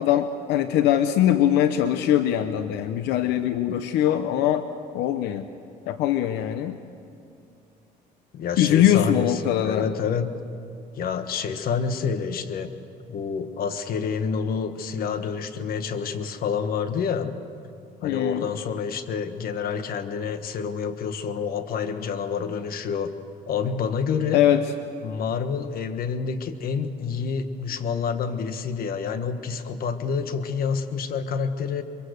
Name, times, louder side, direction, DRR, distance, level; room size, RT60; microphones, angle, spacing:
voice 1, 0.0-4.6 4.9-5.5 5.9-6.8 8.6-9.9 18.0-18.5 24.3-24.6, left 11 dB, 90° left, 9 dB, 0.9 m, -22 dB
voice 2, 8.3-10.3 11.0-12.7 13.1-17.4 18.0-23.1 23.5-24.4 25.0-31.8, left 6 dB, 60° left, 9 dB, 1.5 m, -28 dB
24.0 x 23.5 x 6.6 m, 2.6 s
cardioid pair, 110°, 17 cm